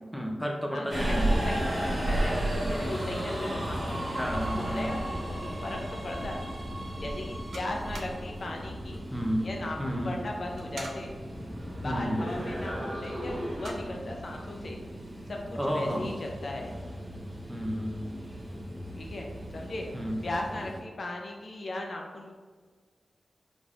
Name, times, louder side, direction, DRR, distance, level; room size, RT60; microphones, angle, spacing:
voice 1, 0.1-1.3 4.1-5.2 9.1-9.5 9.8-10.1 11.8-12.2 15.6-16.2 17.5-18.1 19.9-20.2, equal, ahead, 0 dB, 0.7 m, -32 dB
voice 2, 0.7-1.6 2.1-4.0 4.3-6.4 7.0-9.0 9.4-11.2 11.8-14.8 15.3-16.7 19.0-19.3 19.5-19.9 20.2-22.3, left 2 dB, 65° left, 1 dB, 0.6 m, -37 dB
Subway metro underground, 0.9-20.8, right 1 dB, 30° right, 1.4 m, -34 dB
sound 1, 7.0-15.5, right 2 dB, 85° right, 0.5 m, -51 dB
4.0 x 3.1 x 2.4 m, 1.5 s
cardioid pair, 45°, 0 cm